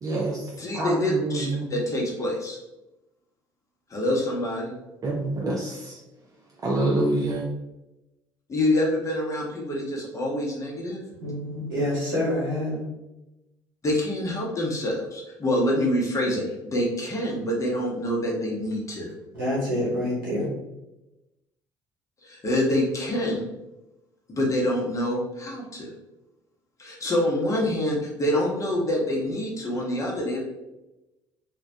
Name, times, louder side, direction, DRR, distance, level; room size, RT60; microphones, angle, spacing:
voice 1, 0.0-1.7 5.0-5.8 6.6-7.5, right 2 dB, 35° right, 0.4 m, -26 dB
voice 2, 0.6-2.6 3.9-4.7 8.5-11.0 13.8-19.1 22.2-23.4 24.3-25.9 26.8-30.4, left 1 dB, 30° left, 0.8 m, -26 dB
voice 3, 11.2-12.9 19.3-20.5, left 1 dB, 85° right, 0.9 m, -27 dB
2.2 x 2.1 x 2.7 m
figure-of-eight pair, 55°, 11 cm